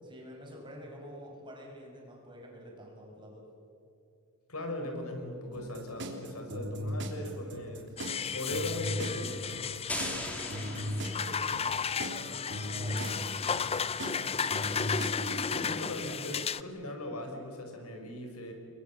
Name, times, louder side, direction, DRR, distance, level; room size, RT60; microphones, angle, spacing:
voice 1, 0.0-3.5 9.9-12.5 12.7-13.8, equal, 20° right, -1 dB, 6.3 m, -48 dB
voice 2, 4.5-7.9 8.3-9.5 15.0-18.5, left 1 dB, 85° left, 3 dB, 5.3 m, -39 dB
sound 1, 5.5-15.6, equal, 55° right, 3.3 m, -37 dB
sound 2, 8.0-16.6, left 6 dB, 25° left, 0.5 m, -34 dB
sound 3, 9.9-11.7, left 1 dB, 5° left, 2.8 m, -39 dB
29.5 x 23.0 x 7.3 m, 2.7 s
head